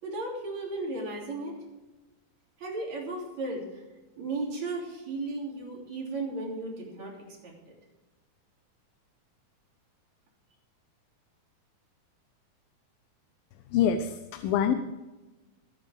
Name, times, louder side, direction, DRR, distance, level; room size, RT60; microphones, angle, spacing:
voice 1, 0.0-1.6 2.6-3.8 4.2-7.2 7.4-7.5, right 2 dB, 50° right, -2 dB, 4.2 m, -35 dB
voice 2, 13.7-14.8, left 8 dB, 85° left, 8 dB, 2.6 m, -25 dB
22.5 x 9.1 x 3.6 m, 1.1 s
omnidirectional pair, 4.1 m